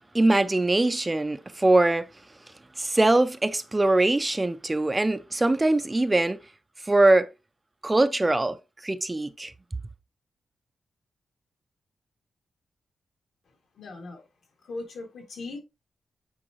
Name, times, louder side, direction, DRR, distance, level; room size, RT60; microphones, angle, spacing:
voice 1, 0.1-2.1 2.8-6.4 6.9-7.3 7.8-8.6 8.8-9.5, right 2 dB, 15° right, 0.4 m, -22 dB
voice 2, 13.8-14.3 14.6-15.6, left 3 dB, 70° left, 2.1 m, -38 dB
8.7 x 4.6 x 2.9 m
wide cardioid pair, 180°, 0 cm